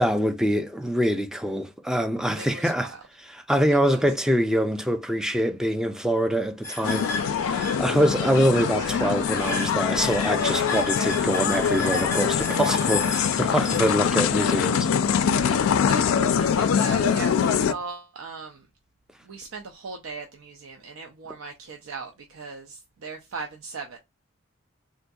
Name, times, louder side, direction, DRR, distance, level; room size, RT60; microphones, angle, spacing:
voice 1, 0.0-2.9 3.5-15.5, equal, 5° right, 0.3 m, -25 dB
voice 2, 2.4-3.0 3.7-4.1 7.8-8.0 13.2-13.9 14.6-15.0 15.4-18.7 19.2-24.0, right 4 dB, 85° right, 0.5 m, -39 dB
sound 1, 6.6-14.6, left 2 dB, 15° left, 0.8 m, -34 dB
sound 2, 6.8-17.7, left 7 dB, 85° left, 0.3 m, -24 dB
3.7 x 2.6 x 2.3 m
head